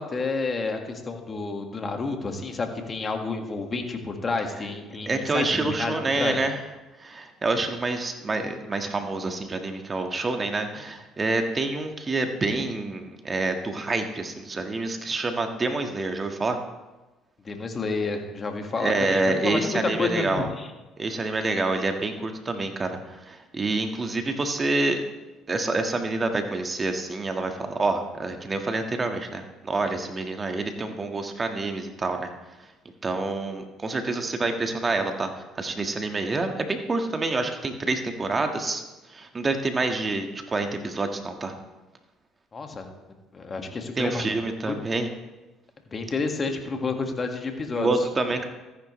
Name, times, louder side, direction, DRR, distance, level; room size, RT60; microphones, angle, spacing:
voice 1, 0.0-6.4 17.5-20.7 42.5-42.9 43.3-44.2 44.7-44.8 45.9-47.9, left 4 dB, 35° left, 4 dB, 1.7 m, -30 dB
voice 2, 5.1-6.6 7.0-16.6 18.8-20.5 21.0-25.0 25.5-32.3 33.0-35.3 35.5-38.8 39.1-41.5 44.0-45.1 47.7-48.5, right 3 dB, 30° right, 5 dB, 1.5 m, -27 dB
14.0 x 10.0 x 3.2 m, 1.1 s
supercardioid pair, 75°, 0 cm